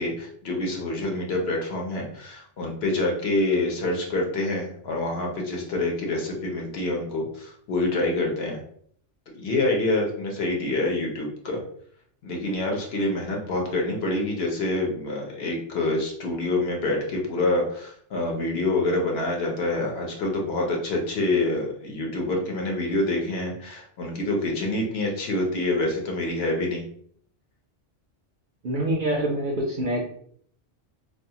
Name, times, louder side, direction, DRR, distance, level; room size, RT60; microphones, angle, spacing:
voice 1, 0.0-8.6 9.3-11.6 12.2-26.8, left 2 dB, 65° left, 0 dB, 0.8 m, -26 dB
voice 2, 28.6-30.1, right 1 dB, 60° right, -1 dB, 0.5 m, -26 dB
2.4 x 2.3 x 2.7 m, 0.63 s
omnidirectional pair, 1.2 m